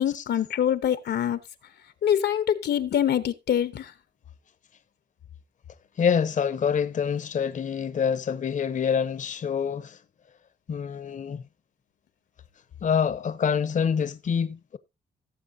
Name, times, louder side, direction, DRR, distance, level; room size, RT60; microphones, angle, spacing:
voice 1, 0.0-1.4 2.0-3.9, left 9 dB, 80° left, 0.9 m, -24 dB
voice 2, 6.0-10.0 10.7-11.4 12.8-14.8, left 7 dB, 50° left, 0.7 m, -26 dB
17.5 x 7.1 x 2.7 m
wide cardioid pair, 115°, 17 cm